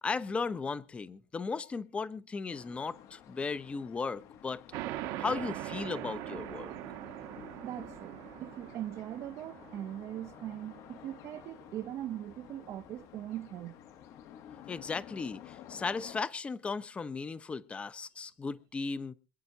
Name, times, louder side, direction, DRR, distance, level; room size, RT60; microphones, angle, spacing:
voice 1, 0.0-4.6 5.2-6.7 14.7-19.1, left 4 dB, 20° left, 0.7 m, -36 dB
sound 1, 2.5-16.2, left 10 dB, 55° left, 1.1 m, -52 dB
sound 2, 4.7-11.9, right 14 dB, 70° right, 1.2 m, -42 dB
voice 2, 7.6-13.8, right 12 dB, 50° right, 0.7 m, -41 dB
26.5 x 8.8 x 2.8 m
cardioid pair, 130°, 6 cm